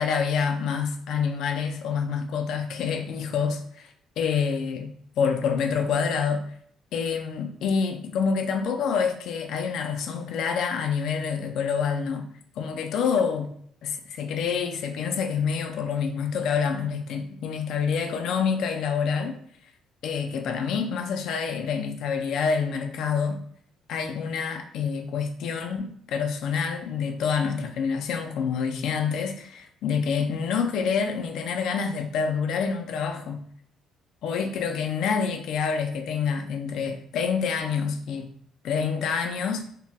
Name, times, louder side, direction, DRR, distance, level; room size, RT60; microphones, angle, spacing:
voice 1, 0.0-3.9 4.2-4.9 5.2-6.5 6.9-12.3 12.6-13.5 13.8-19.4 20.0-23.4 23.9-33.4 34.2-38.3 38.6-39.7, left 6 dB, 55° left, 0.4 m, -27 dB
3.9 x 2.2 x 2.3 m
cardioid pair, 170°, 0 cm